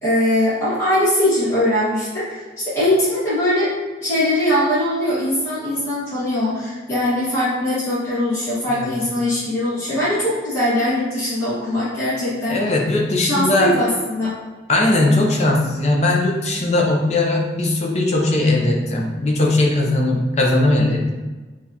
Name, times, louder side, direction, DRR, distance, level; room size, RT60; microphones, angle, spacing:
voice 1, 0.0-2.4 2.7-3.7 4.0-12.6 13.2-14.3, left 1 dB, 15° left, -13 dB, 1.5 m, -21 dB
voice 2, 12.5-13.8 14.7-21.1, left 2 dB, 35° left, 0 dB, 0.6 m, -19 dB
6.1 x 2.4 x 2.8 m, 1.3 s
head